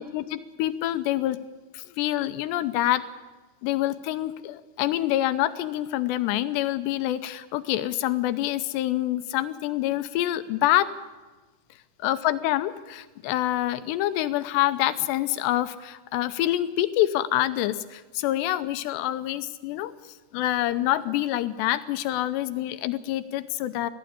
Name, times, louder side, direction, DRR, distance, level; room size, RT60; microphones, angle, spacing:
voice 1, 0.0-1.4 1.7-3.0 3.6-10.9 12.0-19.9 20.3-23.9, left 14 dB, 80° left, 12 dB, 2.7 m, -26 dB
21.0 x 15.5 x 8.7 m, 1.2 s
omnidirectional pair, 5.3 m